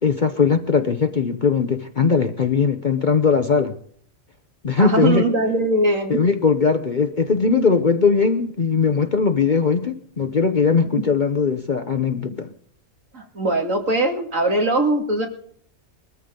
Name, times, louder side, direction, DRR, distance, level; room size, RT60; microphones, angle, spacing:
voice 1, 0.0-3.8 4.6-5.2 6.1-12.5, left 5 dB, 40° left, 0.9 m, -19 dB
voice 2, 4.8-6.2 13.1-15.3, right 1 dB, 65° right, 2.8 m, -21 dB
21.5 x 14.0 x 3.8 m
omnidirectional pair, 1.4 m